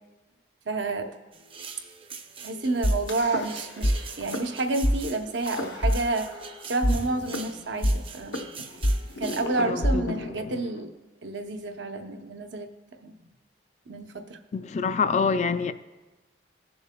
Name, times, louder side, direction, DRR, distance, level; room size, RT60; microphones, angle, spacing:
voice 1, 0.7-1.1 2.4-6.3 6.7-8.4 9.2-10.9 11.2-12.7 13.0-13.1 13.9-14.4, right 2 dB, 70° right, 0.7 m, -29 dB
sound 1, 1.3-9.4, right 5 dB, 30° right, 0.6 m, -43 dB
sound 2, 2.8-3.9 4.2-4.4 4.8-4.9 5.5-6.5 6.8-10.8, equal, 65° left, 0.7 m, -26 dB
voice 2, 9.6-10.2 14.5-15.7, left 5 dB, 40° left, 0.3 m, -26 dB
19.0 x 7.0 x 2.2 m
head